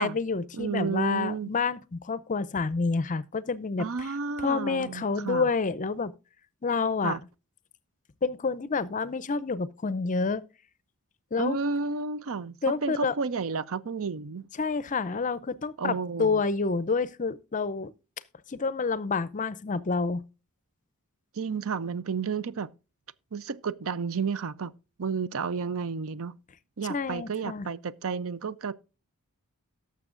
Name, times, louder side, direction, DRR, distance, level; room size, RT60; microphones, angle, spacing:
voice 1, 0.0-3.9 4.4-6.1 6.6-7.2 8.2-10.4 11.3-11.6 12.6-13.1 14.6-17.9 18.5-20.2 26.9-27.7, left 4 dB, 35° left, 0.5 m, -28 dB
voice 2, 0.5-1.5 3.8-5.5 7.0-7.2 11.4-12.6 12.8-14.5 15.8-16.4 21.3-22.7 23.3-24.7 25.0-26.3 26.8-28.7, right 5 dB, 65° right, 0.6 m, -31 dB
18.0 x 6.9 x 2.5 m
head